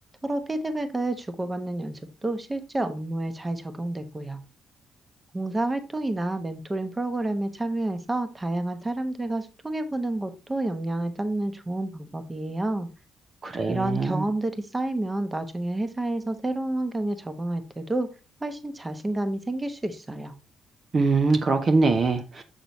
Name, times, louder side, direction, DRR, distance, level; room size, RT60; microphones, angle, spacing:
voice 1, 0.2-4.4 5.3-12.9 13.7-18.1 18.4-20.3, right 2 dB, 20° right, 1.0 m, -29 dB
voice 2, 13.4-14.3 20.9-22.4, right 3 dB, 40° right, 0.8 m, -23 dB
6.9 x 6.1 x 3.0 m
cardioid pair, 90°, 0 cm